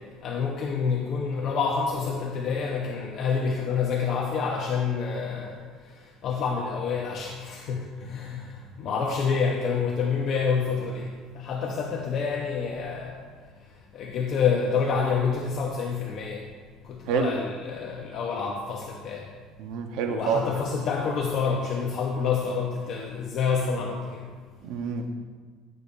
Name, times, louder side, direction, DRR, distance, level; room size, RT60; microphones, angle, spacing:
voice 1, 0.2-5.6 6.2-13.1 13.9-16.4 16.8-19.2 20.1-24.2, left 5 dB, 50° left, -1 dB, 1.1 m, -28 dB
voice 2, 19.6-20.5 24.6-25.0, right 6 dB, 75° right, 5 dB, 1.1 m, -27 dB
15.0 x 8.5 x 2.7 m, 1.6 s
cardioid pair, 125°, 0 cm